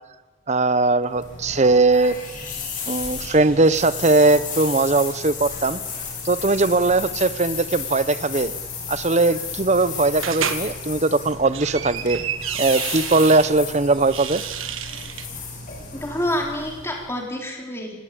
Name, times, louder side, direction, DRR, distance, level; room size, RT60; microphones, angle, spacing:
voice 1, 0.5-2.2 2.9-5.8 6.2-8.5 8.9-12.2 12.6-14.4, right 3 dB, 35° right, 15 dB, 0.8 m, -19 dB
sound 1, 1.0-17.2, left 5 dB, 40° left, 7.2 m, -34 dB
sound 2, 10.2-10.6 11.3-13.5 14.0-15.3, right 8 dB, 85° right, 1.6 m, -30 dB
voice 2, 15.9-18.0, left 1 dB, 15° left, 0 dB, 4.2 m, -27 dB
25.5 x 19.0 x 8.7 m, 1.2 s
head